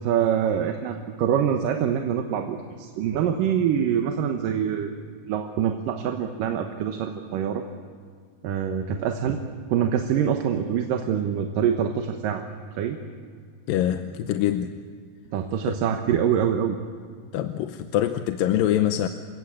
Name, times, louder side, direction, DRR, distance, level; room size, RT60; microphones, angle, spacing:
voice 1, 0.0-4.9 5.3-7.6 8.4-9.4 9.7-12.4 12.8-13.0 15.3-16.8, right 8 dB, 70° right, 4 dB, 2.7 m, -25 dB
voice 2, 13.7-14.7 15.7-15.8 17.3-19.1, left 11 dB, 80° left, 8 dB, 2.4 m, -24 dB
29.5 x 17.5 x 8.6 m, 2.1 s
omnidirectional pair, 4.2 m